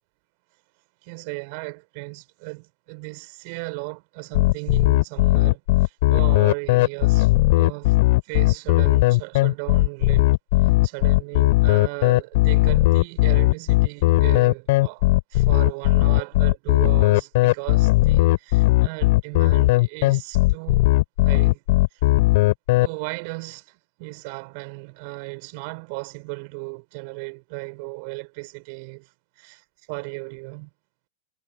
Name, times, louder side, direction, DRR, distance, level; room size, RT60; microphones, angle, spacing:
voice 1, 1.0-8.0 8.2-10.3 10.6-20.9 21.2-21.6 21.9-22.0 22.8-30.7, right 33 dB, 45° right, 6.2 m, -36 dB
sound 1, 4.3-22.9, left 19 dB, 50° left, 3.9 m, -17 dB
figure-of-eight pair, 90°, 0 cm